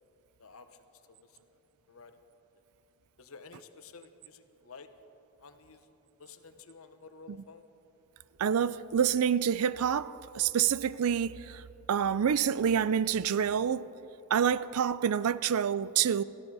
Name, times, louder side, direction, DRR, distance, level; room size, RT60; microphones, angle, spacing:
voice 1, 0.4-1.6 1.9-2.2 3.2-4.9 5.4-5.9 6.2-7.7, left 4 dB, 65° left, 0.9 m, -52 dB
voice 2, 8.4-11.6 11.9-13.9 14.3-16.2, right 8 dB, 75° right, 0.4 m, -27 dB
19.0 x 14.0 x 4.8 m
head